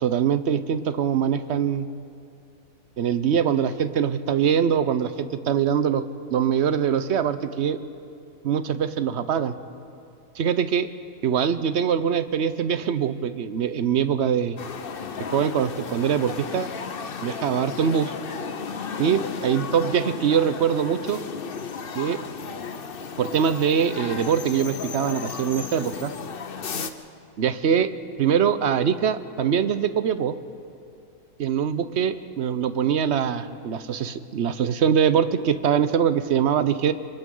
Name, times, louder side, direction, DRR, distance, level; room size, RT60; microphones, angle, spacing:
voice 1, 0.0-1.9 3.0-6.0 6.3-7.8 8.4-9.5 10.4-10.9 11.2-14.6 15.3-16.7 17.2-18.1 19.0-21.2 21.9-22.2 23.2-26.1 27.4-27.9 28.2-30.3 31.4-36.9, right 8 dB, 55° right, 12 dB, 0.9 m, -23 dB
sound 1, 14.6-26.9, left 6 dB, 45° left, 0.9 m, -34 dB
28.0 x 24.5 x 3.8 m, 2.5 s
omnidirectional pair, 1.6 m